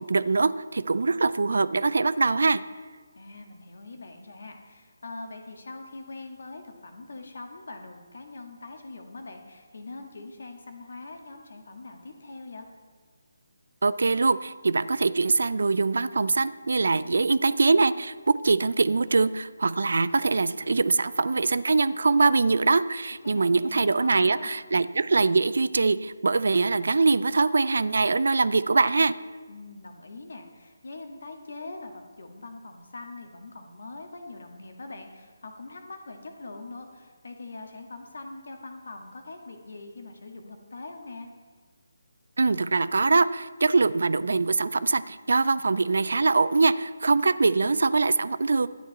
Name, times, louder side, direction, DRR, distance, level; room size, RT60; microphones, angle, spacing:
voice 1, 0.0-2.6 13.8-29.1 42.4-48.7, right 3 dB, 60° right, 16 dB, 0.4 m, -23 dB
voice 2, 3.2-12.7 23.2-24.5 29.5-41.3, left 3 dB, 60° left, 4 dB, 1.7 m, -42 dB
12.5 x 9.5 x 4.1 m, 1.5 s
figure-of-eight pair, 150°, 0 cm